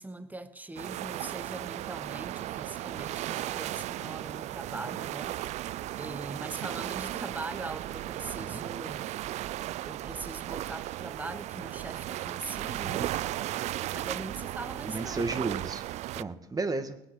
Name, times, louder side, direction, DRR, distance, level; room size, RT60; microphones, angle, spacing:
voice 1, 0.0-9.1 9.6-13.2 13.7-15.4, right 2 dB, 15° right, 1.1 m, -42 dB
sound 1, 0.8-16.2, right 14 dB, 65° right, 0.4 m, -36 dB
voice 2, 14.9-15.9 16.2-17.0, right 3 dB, 30° right, 1.8 m, -33 dB
20.5 x 8.0 x 6.3 m
supercardioid pair, 70°, 13 cm